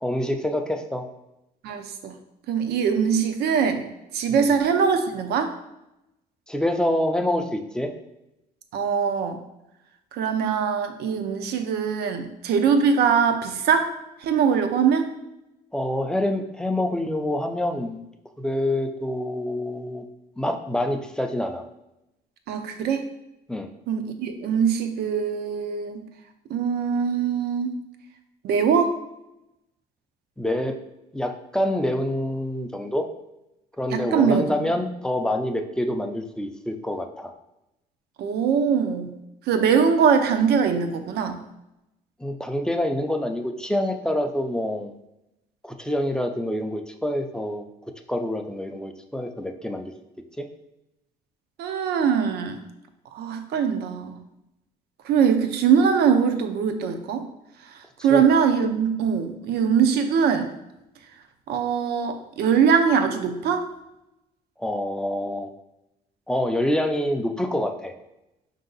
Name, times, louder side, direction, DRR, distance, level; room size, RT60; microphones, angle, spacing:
voice 1, 0.0-1.0 4.3-4.5 6.5-7.9 15.7-18.0 18.4-20.0 20.4-21.6 23.5-23.7 30.4-30.8 31.1-33.1 33.8-37.3 42.2-45.0 45.6-49.9 50.4-50.5 58.1-58.3 64.6-65.5 66.3-67.9, left 1 dB, 5° left, 5 dB, 0.4 m, -26 dB
voice 2, 1.6-2.1 2.5-3.8 4.1-5.5 8.7-9.4 10.1-13.9 14.2-15.1 22.5-23.1 23.9-26.0 26.5-27.8 28.4-28.9 33.9-34.7 38.2-39.1 39.5-41.4 51.6-52.6 53.1-54.2 55.0-57.3 57.7-60.5 61.5-63.7, right 6 dB, 75° right, 8 dB, 0.6 m, -22 dB
5.1 x 2.7 x 3.9 m, 0.88 s
cardioid pair, 110°, 17 cm